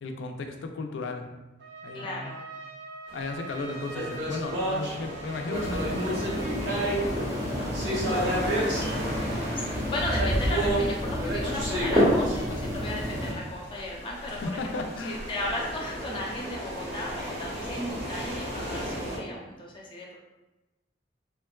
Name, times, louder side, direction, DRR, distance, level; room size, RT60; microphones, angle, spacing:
voice 1, 0.0-1.3 1.8-2.4 3.1-8.6 14.3-15.2, left 2 dB, 85° left, 4 dB, 0.4 m, -36 dB
Trumpet, 1.6-7.5, right 4 dB, 70° right, 0.4 m, -44 dB
voice 2, 1.9-2.4 3.9-4.0 9.6-20.2, left 1 dB, 30° left, -3 dB, 0.5 m, -35 dB
sound 1, 3.5-13.2 14.1-19.2, right 1 dB, 90° right, 0.8 m, -32 dB
sound 2, 5.5-13.3, equal, 15° right, 0.6 m, -29 dB
3.5 x 2.2 x 2.2 m, 1.0 s
head